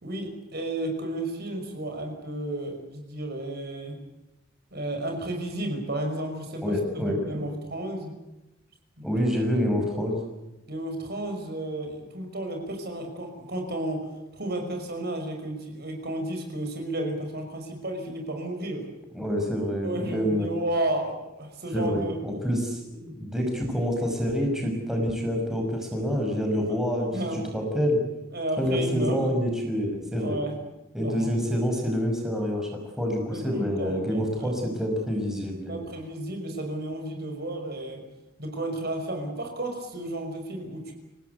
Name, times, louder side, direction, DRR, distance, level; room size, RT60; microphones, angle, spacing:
voice 1, 0.0-4.0 4.7-8.2 9.0-9.1 10.7-18.9 19.8-22.2 27.1-27.5 28.3-29.2 30.2-30.6 31.0-31.3 33.3-34.5 35.7-38.0 38.4-40.9, right 1 dB, 45° right, 3 dB, 5.7 m, -32 dB
voice 2, 6.6-7.4 9.0-10.2 19.1-20.5 21.7-28.0 28.6-30.4 30.9-35.8, equal, ahead, 1 dB, 5.7 m, -27 dB
29.0 x 18.5 x 8.2 m, 0.97 s
head